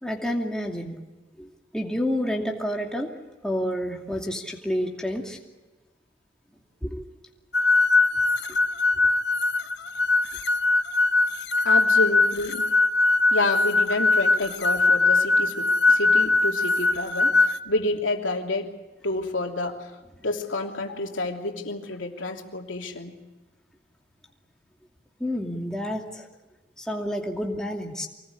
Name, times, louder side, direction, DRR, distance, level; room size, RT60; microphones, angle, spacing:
voice 1, 0.0-1.0 1.4-1.5 1.7-3.1 3.4-5.4 6.8-7.1 25.2-26.3 26.8-28.1, equal, 5° left, -1 dB, 2.6 m, -29 dB
sound 1, 7.5-17.6, left 3 dB, 60° left, 0.9 m, -21 dB
voice 2, 11.6-12.7 13.3-18.7 19.0-19.9 20.2-23.2, left 2 dB, 90° left, 2 dB, 3.1 m, -29 dB
25.0 x 19.5 x 8.6 m, 1.2 s
head